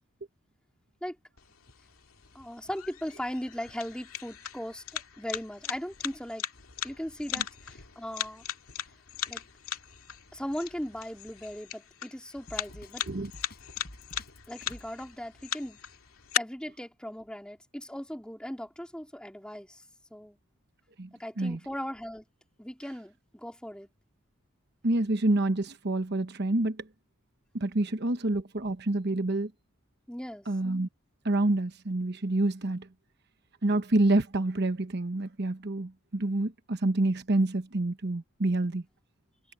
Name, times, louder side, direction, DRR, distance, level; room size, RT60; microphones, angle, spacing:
sound 1, 1.4-16.4, left 10 dB, 80° left, 2.2 m, -39 dB
voice 1, 2.3-6.4 6.8-8.4 9.3-9.4 10.3-13.0 14.5-15.8 16.3-19.8 20.1-20.4 21.2-22.2 22.6-23.9 30.1-30.5, equal, 5° left, 3.3 m, -38 dB
Drum kit, 12.5-14.9, left 1 dB, 45° left, 5.8 m, -49 dB
voice 2, 24.8-26.8 27.5-29.5 30.5-30.9 31.2-32.9 33.6-38.8, right 2 dB, 50° right, 1.1 m, -27 dB
head